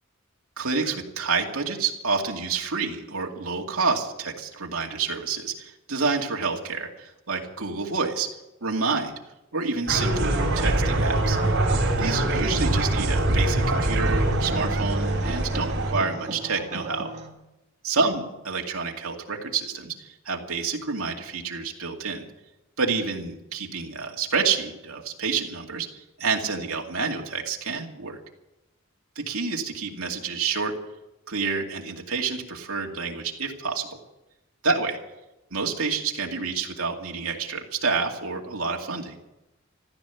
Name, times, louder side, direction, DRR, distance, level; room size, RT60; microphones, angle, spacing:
voice 1, 0.6-8.3 8.6-9.1 9.5-11.4 12.0-17.1 17.8-22.3 22.8-28.2 29.2-30.7 31.3-34.0 34.6-35.0 35.5-39.2, right 4 dB, 80° right, 1 dB, 2.4 m, -28 dB
sound 1, 9.9-15.9, right 1 dB, 60° right, 4.4 m, -24 dB
sound 2, 10.2-17.3, right 3 dB, 35° right, 2.3 m, -35 dB
15.0 x 13.5 x 7.1 m, 0.96 s
head